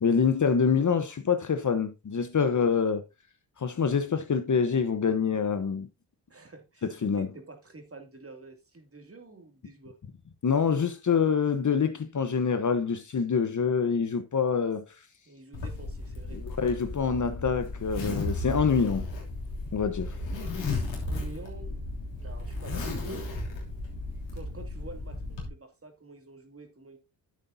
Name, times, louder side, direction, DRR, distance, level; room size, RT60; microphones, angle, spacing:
voice 1, 0.0-3.0 3.6-5.9 6.8-7.3 10.4-14.8 16.6-19.1 19.7-20.2, left 6 dB, 40° left, 1.1 m, -26 dB
voice 2, 6.3-6.9 7.1-10.0 15.3-16.4 20.8-21.8 22.2-23.1 24.3-27.0, right 3 dB, 30° right, 2.6 m, -48 dB
Zipper (clothing), 15.5-25.5, left 2 dB, 75° left, 3.1 m, -34 dB
10.0 x 8.0 x 2.8 m
supercardioid pair, 50°, 45 cm